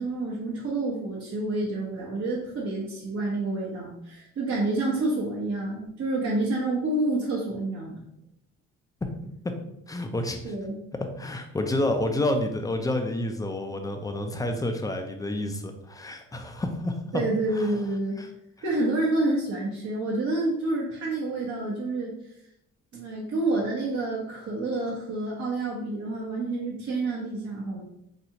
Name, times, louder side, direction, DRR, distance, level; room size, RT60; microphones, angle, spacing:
voice 1, 0.0-8.0 10.4-10.8 17.1-18.2 18.6-22.1 22.9-27.8, right 2 dB, 50° right, -5 dB, 0.9 m, -28 dB
voice 2, 9.9-10.5 11.2-17.2 17.5-17.7 18.2-18.3, left 1 dB, 10° left, 5 dB, 0.5 m, -29 dB
4.2 x 2.3 x 2.9 m, 0.79 s
cardioid pair, 90°, 30 cm